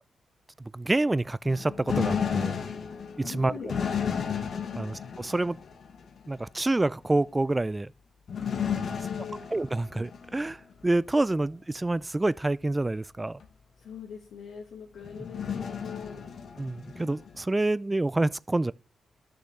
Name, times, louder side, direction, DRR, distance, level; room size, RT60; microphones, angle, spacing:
voice 1, 0.7-2.6 3.2-3.5 4.8-5.6 6.3-7.9 9.5-13.4 16.6-18.7, right 2 dB, 20° right, 0.3 m, -27 dB
sound 1, 1.4-6.3 8.3-10.4 10.8-10.9 13.4-13.5 15.0-17.4, left 7 dB, 65° left, 1.2 m, -33 dB
voice 2, 3.2-3.8 4.7-4.9 8.8-9.4 13.8-16.3, left 7 dB, 85° left, 1.5 m, -42 dB
11.5 x 6.4 x 3.2 m
cardioid pair, 65°, 0 cm